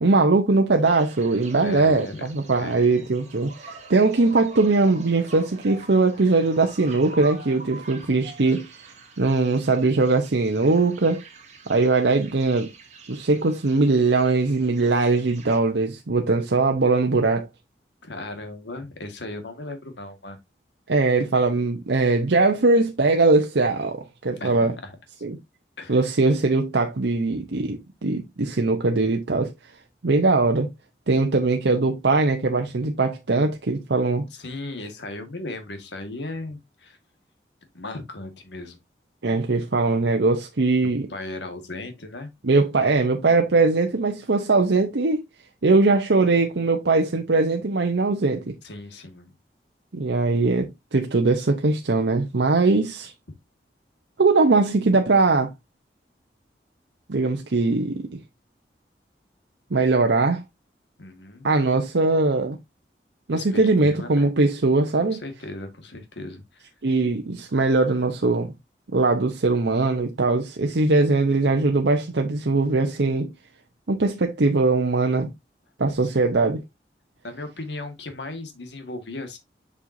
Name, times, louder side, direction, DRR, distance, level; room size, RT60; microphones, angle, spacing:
voice 1, 0.0-8.7 9.2-11.2 11.7-12.7 13.1-17.5 20.9-24.7 25.2-25.4 25.9-29.5 30.0-30.7 31.1-34.3 39.2-41.1 42.4-45.2 45.6-48.5 49.9-53.1 54.2-55.5 57.1-58.2 59.7-60.4 61.4-62.6 63.3-65.2 66.8-68.5 68.9-73.3 73.9-75.3 75.8-76.6, right 3 dB, 80° right, 0.8 m, -21 dB
sound 1, 0.8-15.6, right 3 dB, 40° right, 2.3 m, -45 dB
voice 2, 1.6-2.3 2.6-2.9 18.0-20.4 24.4-25.0 25.8-26.0 34.3-37.0 37.7-38.8 41.1-42.3 48.6-49.3 61.0-61.5 63.3-64.3 65.0-66.7 76.1-76.3 77.2-79.4, left 2 dB, 85° left, 1.7 m, -36 dB
7.5 x 5.5 x 2.6 m
head